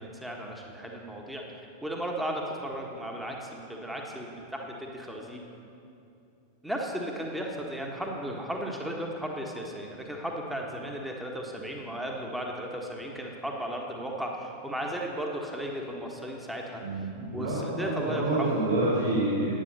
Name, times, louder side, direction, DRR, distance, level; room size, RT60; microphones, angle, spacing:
voice 1, 0.0-1.4 1.8-5.4 6.6-18.6, equal, 5° right, 0 dB, 1.4 m, -35 dB
voice 2, 16.8-19.6, right 2 dB, 70° right, -9 dB, 3.2 m, -28 dB
11.0 x 9.1 x 6.7 m, 2.6 s
figure-of-eight pair, 90°, 0 cm